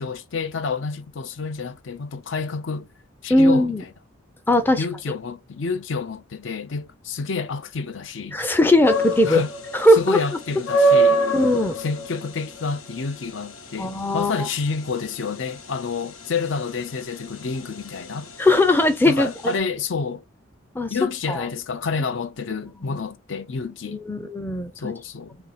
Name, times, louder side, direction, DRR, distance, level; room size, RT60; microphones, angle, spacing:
voice 1, 0.0-2.9 3.2-3.7 4.8-8.4 9.2-9.5 10.0-11.2 11.8-18.3 19.1-20.2 20.9-24.0 24.8-25.4, left 5 dB, 65° left, 0.5 m, -29 dB
voice 2, 3.3-3.8 4.5-4.9 8.3-9.4 9.7-10.2 11.3-11.8 13.8-14.5 18.4-19.5 20.8-21.0 21.3-21.5 23.9-24.9, left 1 dB, 10° left, 0.4 m, -19 dB
sound 1, 8.8-19.6, right 2 dB, 90° left, 0.9 m, -25 dB
2.7 x 2.6 x 4.0 m
head